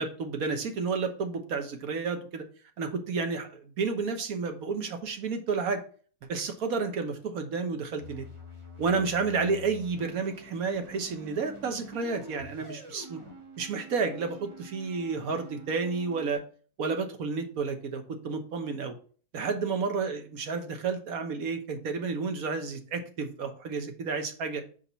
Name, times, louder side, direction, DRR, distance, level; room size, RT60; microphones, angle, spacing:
voice 1, 0.0-2.4 2.8-5.8 6.3-8.2 8.8-13.2 13.6-16.4 16.8-18.9 19.3-24.6, right 4 dB, 75° right, 6 dB, 1.5 m, -31 dB
sound 1, 8.0-16.4, equal, 20° right, 1.9 m, -47 dB
5.2 x 4.7 x 5.5 m, 0.42 s
omnidirectional pair, 1.5 m